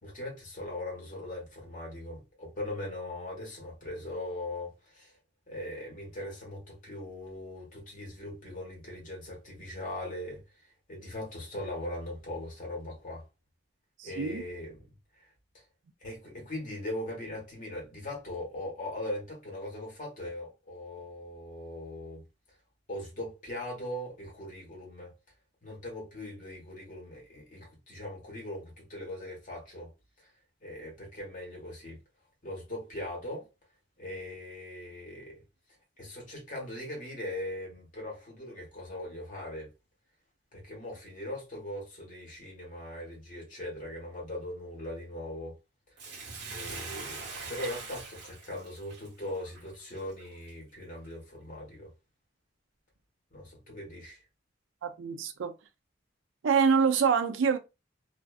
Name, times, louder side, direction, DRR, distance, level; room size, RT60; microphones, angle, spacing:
voice 1, 0.0-5.2 5.5-13.3 14.0-14.8 15.2-15.3 15.5-15.6 16.0-22.2 22.9-25.1 25.6-29.9 30.2-30.3 30.6-32.0 32.4-33.5 34.0-35.4 36.0-39.7 40.5-45.5 46.0-46.1 46.5-51.9 53.3-54.2, left 1 dB, 45° left, 1.2 m, -40 dB
voice 2, 14.0-14.5 54.8-55.5 56.4-57.6, right 6 dB, 80° right, 0.4 m, -26 dB
Bathtub (filling or washing), 46.0-50.5 51.0-51.1, right 4 dB, 60° right, 0.9 m, -42 dB
2.5 x 2.3 x 2.3 m
head